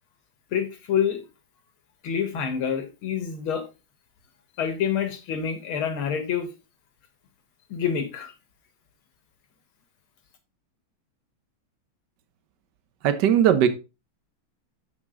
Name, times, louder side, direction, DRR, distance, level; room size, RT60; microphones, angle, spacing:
voice 1, 0.5-1.2 2.0-3.6 4.6-6.5 7.7-8.3, left 8 dB, 80° left, 6 dB, 2.3 m, -27 dB
voice 2, 13.0-13.7, right 9 dB, 60° right, 10 dB, 1.5 m, -18 dB
7.6 x 6.0 x 3.7 m, 0.28 s
omnidirectional pair, 2.3 m